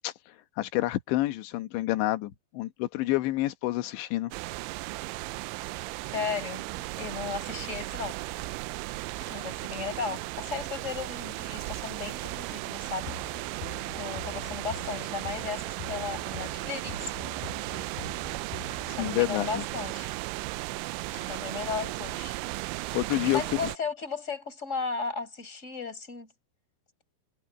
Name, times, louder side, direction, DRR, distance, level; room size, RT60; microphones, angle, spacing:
voice 1, 0.6-4.3 9.2-9.4 18.7-19.6 21.2-21.3 22.9-23.6, left 17 dB, 75° left, 3.1 m, -29 dB
sound 1, 4.3-23.8, right 21 dB, 85° right, 2.8 m, -36 dB
voice 2, 6.1-8.2 9.3-13.2 14.0-17.1 18.9-20.1 21.3-22.4 23.2-26.3, left 5 dB, 15° left, 4.9 m, -35 dB
sound 2, 13.0-19.1, left 4 dB, 50° left, 6.6 m, -44 dB
omnidirectional pair, 5.8 m